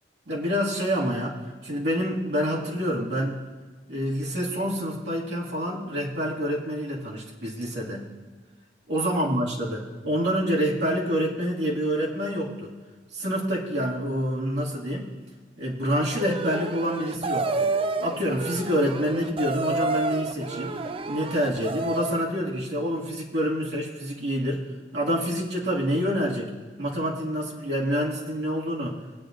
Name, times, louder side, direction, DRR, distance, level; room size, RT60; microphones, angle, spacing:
voice 1, 0.3-3.4 3.9-8.0 8.9-12.7 13.1-15.1 15.6-17.7 18.0-20.7 21.1-24.6 24.9-26.5 26.8-29.0, equal, 75° right, -5 dB, 2.2 m, -27 dB
sound 1, 16.1-22.3, right 3 dB, 30° right, 0.4 m, -30 dB
19.5 x 8.9 x 2.6 m, 1.4 s
head